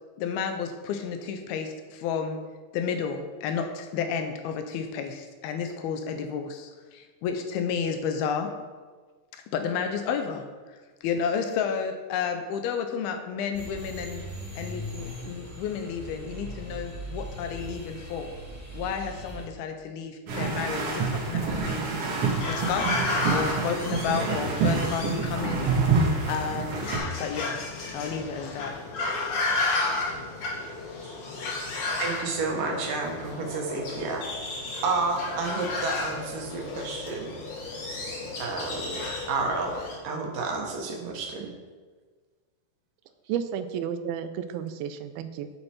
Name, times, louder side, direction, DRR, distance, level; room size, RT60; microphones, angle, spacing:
voice 1, 0.2-2.4 2.7-8.5 9.3-10.8 11.0-14.2 14.6-18.3 18.7-21.8 22.5-23.0 23.3-25.7 26.3-26.9 27.2-27.6 27.9-28.7, left 6 dB, 85° left, 6 dB, 2.8 m, -31 dB
sound 1, 13.5-19.5, equal, 10° right, 1.0 m, -39 dB
sound 2, 20.3-27.0, right 4 dB, 50° right, 1.9 m, -27 dB
sound 3, 21.7-40.0, left 3 dB, 50° left, 1.9 m, -33 dB
voice 2, 32.0-34.2 34.8-37.4 38.4-39.0 39.3-39.8 40.0-41.5, right 3 dB, 70° right, 1 dB, 2.8 m, -30 dB
voice 3, 43.3-45.5, right 8 dB, 85° right, 10 dB, 2.5 m, -32 dB
9.0 x 7.8 x 4.5 m, 1.4 s
omnidirectional pair, 4.3 m